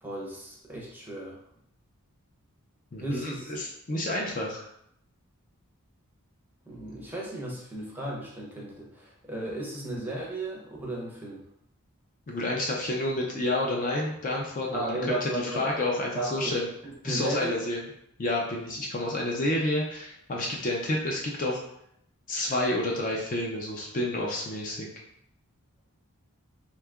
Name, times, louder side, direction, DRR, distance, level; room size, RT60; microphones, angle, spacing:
voice 1, 0.0-1.4 3.0-3.5 6.7-11.4 14.7-15.7 16.1-16.6 16.8-17.6, right 1 dB, 10° right, -4 dB, 0.6 m, -35 dB
voice 2, 2.9-4.6 12.3-16.6 17.0-17.8 18.2-21.6 22.3-24.9, left 1 dB, 35° left, -2 dB, 0.4 m, -29 dB
2.8 x 2.3 x 3.4 m, 0.74 s
head